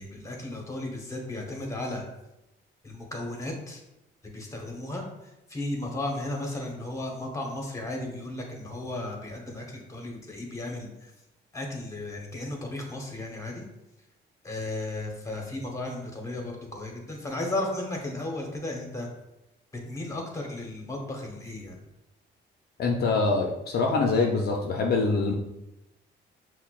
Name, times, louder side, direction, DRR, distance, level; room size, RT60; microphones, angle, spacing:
voice 1, 0.0-2.0 2.8-3.8 4.3-5.0 5.5-11.1 11.5-13.6 14.4-19.1 19.9-21.8, left 2 dB, 15° left, 1 dB, 0.9 m, -34 dB
voice 2, 22.8-25.3, left 3 dB, 55° left, 0 dB, 0.5 m, -24 dB
5.6 x 2.1 x 2.3 m, 0.92 s
cardioid pair, 90°, 20 cm